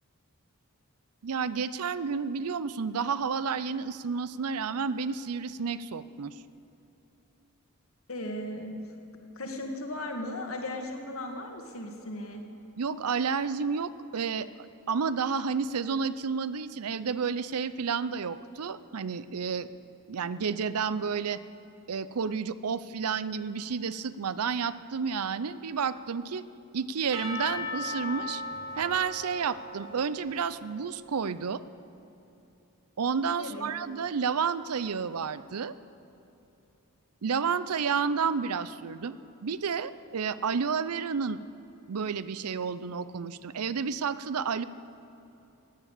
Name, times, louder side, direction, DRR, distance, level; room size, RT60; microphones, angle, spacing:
voice 1, 1.2-6.3 12.8-14.5 14.9-19.7 20.1-21.4 21.9-26.4 26.7-28.4 28.8-31.6 33.0-35.7 37.2-39.1 39.4-41.4 41.9-44.6, right 6 dB, 85° right, 16 dB, 0.6 m, -30 dB
voice 2, 8.1-8.8 9.4-12.4 33.4-33.7, left 1 dB, 65° left, 3 dB, 2.0 m, -36 dB
Percussion / Church bell, 27.1-31.1, left 2 dB, 15° right, 2.0 m, -38 dB
16.5 x 10.0 x 8.3 m, 3.0 s
head